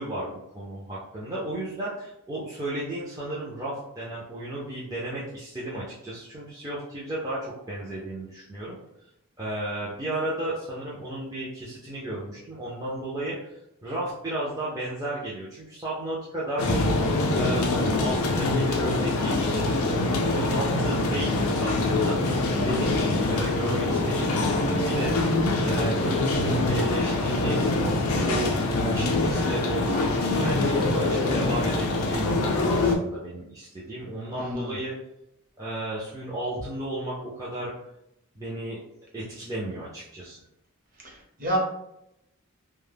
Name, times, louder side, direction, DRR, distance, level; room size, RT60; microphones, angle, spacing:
voice 1, 0.0-8.8 9.4-13.5 13.8-17.0 17.4-22.2 22.6-25.3 25.6-27.6 28.2-34.9 35.6-37.7 38.4-38.8 39.1-40.4, right 1 dB, 15° right, -8 dB, 0.4 m, -34 dB
sound 1, 16.6-33.0, left 2 dB, 75° left, 0.4 m, -24 dB
voice 2, 34.3-34.8 41.0-41.6, equal, 40° right, -2 dB, 0.7 m, -30 dB
2.1 x 2.0 x 3.2 m, 0.83 s
head